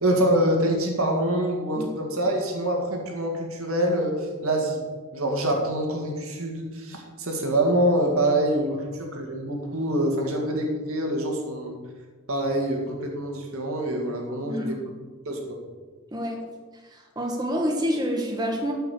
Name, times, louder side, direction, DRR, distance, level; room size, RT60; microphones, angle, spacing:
voice 1, 0.0-4.8 5.1-11.8 12.3-14.8 15.3-15.6, right 1 dB, 80° right, 1 dB, 2.1 m, -25 dB
voice 2, 16.9-18.7, equal, 20° right, 0 dB, 1.3 m, -27 dB
13.0 x 5.7 x 6.9 m, 1.4 s
head